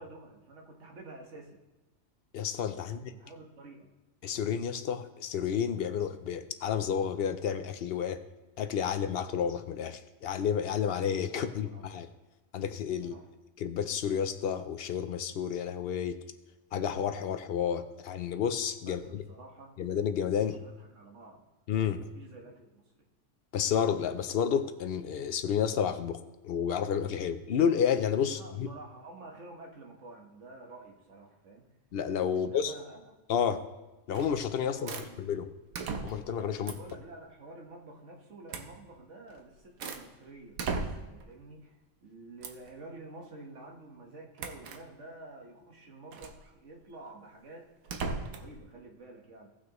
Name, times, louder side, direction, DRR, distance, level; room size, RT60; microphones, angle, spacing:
voice 1, 0.0-1.6 2.8-3.9 11.3-11.8 13.0-13.3 18.8-19.8 20.4-21.5 22.1-22.8 28.3-31.7 32.3-33.1 34.6-35.3 36.6-40.6 41.0-47.7 48.3-49.5, right 2 dB, 60° right, 0 dB, 1.6 m, -49 dB
voice 2, 2.3-3.1 4.2-8.2 8.6-12.1 12.5-13.1 13.6-16.2 16.7-19.2 19.8-20.6 21.7-22.1 23.5-26.2 26.4-28.7 31.9-32.7 33.3-33.7 34.1-34.9 35.2-35.5 36.0-36.7, left 8 dB, 60° left, 10 dB, 0.6 m, -30 dB
sound 1, 34.1-34.5 34.9-35.1 35.7-36.3 36.7-37.0 38.5-38.7 39.3-40.1 40.6-41.2 42.4-42.7 44.4-44.8 46.1-46.4 47.9-48.5, right 4 dB, 80° right, 1.2 m, -37 dB
17.0 x 6.2 x 3.0 m, 1.1 s
omnidirectional pair, 1.5 m